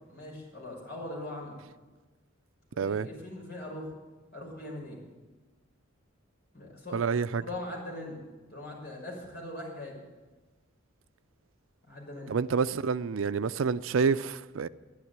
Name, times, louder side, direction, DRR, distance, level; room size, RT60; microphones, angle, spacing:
voice 1, 0.1-1.6 2.7-3.9 4.3-5.0 6.5-7.1 7.4-8.2 8.5-10.0 11.9-12.4, left 1 dB, 55° left, 6.0 m, -41 dB
voice 2, 2.8-3.1 6.9-7.4 12.3-14.7, right 5 dB, 75° right, 0.5 m, -28 dB
12.0 x 11.5 x 9.5 m
head